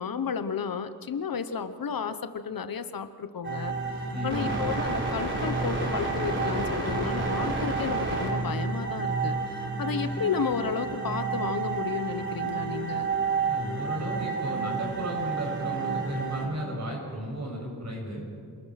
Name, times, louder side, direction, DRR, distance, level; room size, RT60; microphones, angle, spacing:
voice 1, 0.0-3.8 4.2-9.3 9.8-13.1, left 6 dB, 65° left, 11 dB, 1.0 m, -32 dB
sound 1, 3.4-16.5, right 4 dB, 30° right, 4.2 m, -30 dB
voice 2, 4.1-4.6 13.4-18.3, right 1 dB, 45° right, 0 dB, 6.4 m, -34 dB
27.5 x 20.0 x 5.9 m, 2.3 s
wide cardioid pair, 155°, 38 cm